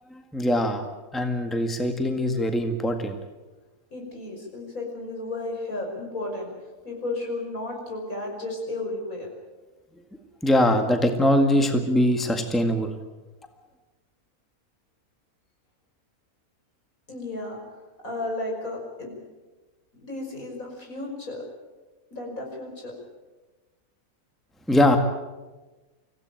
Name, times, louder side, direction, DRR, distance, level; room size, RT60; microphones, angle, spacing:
voice 1, 0.1-0.9 1.1-3.1 10.4-12.9 24.7-25.0, left 1 dB, ahead, 5 dB, 1.7 m, -22 dB
voice 2, 3.9-6.5 6.8-9.3 17.1-17.6 18.0-19.2 20.0-21.4 22.1-23.0, left 2 dB, 70° left, 0 dB, 6.1 m, -33 dB
26.0 x 16.5 x 9.1 m, 1.2 s
omnidirectional pair, 1.5 m